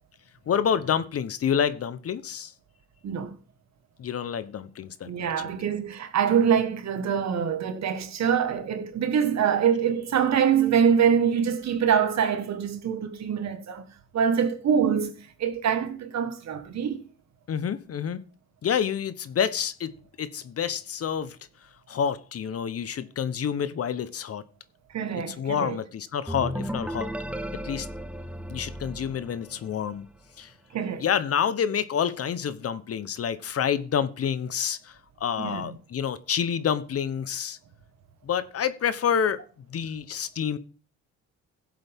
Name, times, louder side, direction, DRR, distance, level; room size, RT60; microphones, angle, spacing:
voice 1, 0.5-2.5 4.0-5.5 17.5-18.2 18.6-19.9 20.2-21.4 21.9-24.4 25.3-27.1 27.5-27.9 28.5-30.1 30.4-30.5 31.0-37.6 38.2-39.4 39.7-40.6, left 8 dB, 50° left, 0.9 m, -28 dB
voice 2, 3.0-3.4 5.1-13.8 14.1-15.1 15.4-17.0 24.9-25.8 30.7-31.0 35.4-35.7, right 7 dB, 60° right, 1.6 m, -24 dB
sound 1, 26.3-30.0, equal, 5° right, 0.7 m, -35 dB
16.5 x 7.7 x 3.6 m
cardioid pair, 90°, 30 cm